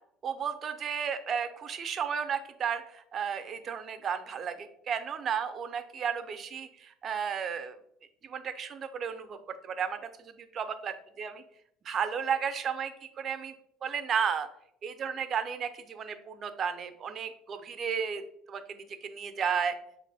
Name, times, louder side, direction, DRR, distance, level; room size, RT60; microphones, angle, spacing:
voice 1, 0.2-7.7 8.2-9.4 9.6-11.4 11.9-13.5 13.8-14.5 14.8-18.2 18.5-19.7, right 7 dB, 45° right, 10 dB, 0.5 m, -33 dB
4.7 x 2.5 x 3.3 m, 0.70 s
supercardioid pair, 80°, 0 cm